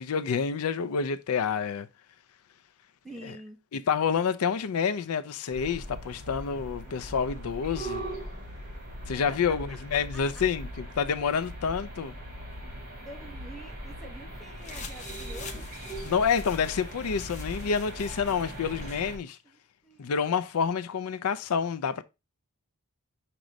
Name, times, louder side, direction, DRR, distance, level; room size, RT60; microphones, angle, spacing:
voice 1, 0.0-1.9 3.7-8.0 9.1-12.1 16.0-19.4 20.0-22.0, left 6 dB, 80° left, 0.4 m, -28 dB
voice 2, 3.0-3.6 9.3-10.4 13.0-15.7 16.2-16.3 19.8-20.1, right 1 dB, ahead, 1.1 m, -47 dB
sound 1, 5.5-19.2, right 1 dB, 40° right, 2.3 m, -40 dB
sound 2, 14.6-19.0, left 3 dB, 35° left, 0.7 m, -45 dB
6.3 x 3.0 x 5.0 m
head